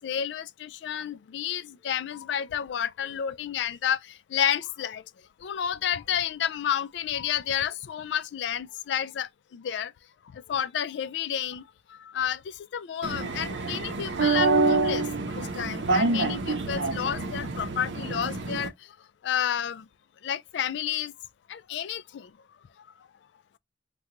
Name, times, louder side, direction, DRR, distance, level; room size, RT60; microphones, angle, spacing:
voice 1, 0.0-4.0 4.3-5.0 5.4-9.9 10.5-11.6 12.1-12.4 12.7-15.0 15.3-18.7 19.2-19.8 20.2-21.1 21.5-22.3, left 9 dB, 75° left, 0.3 m, -30 dB
sound 1, 13.0-18.7, right 3 dB, 90° right, 0.6 m, -27 dB
3.7 x 2.2 x 2.9 m
head